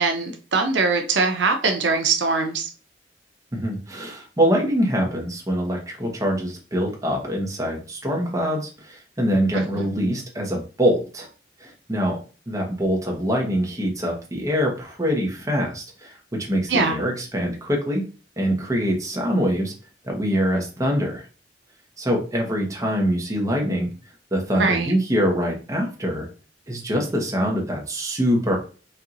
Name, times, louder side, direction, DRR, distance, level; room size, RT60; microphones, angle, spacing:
voice 1, 0.0-2.7 9.5-10.0 16.7-17.0 24.5-24.9, right 4 dB, 80° right, 4 dB, 0.7 m, -22 dB
voice 2, 3.5-11.3 11.6-12.2 12.5-16.2 16.5-18.0 18.4-19.7 20.0-21.2 22.0-23.9 24.3-26.3 26.7-28.6, equal, 20° right, 0 dB, 1.1 m, -24 dB
4.4 x 2.7 x 3.8 m, 0.36 s
head